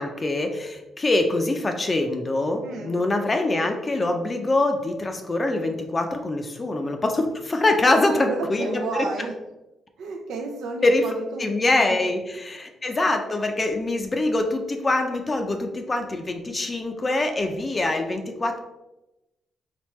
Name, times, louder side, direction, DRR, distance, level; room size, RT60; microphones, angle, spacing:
voice 1, 0.0-9.1 10.8-11.0 11.4-18.6, left 2 dB, 30° left, 4 dB, 0.5 m, -24 dB
voice 2, 2.6-3.0 7.9-9.4 10.0-11.5 11.8-12.0, right 3 dB, 85° right, 2 dB, 0.5 m, -32 dB
3.6 x 3.4 x 3.1 m, 0.97 s
cardioid pair, 95°, 0 cm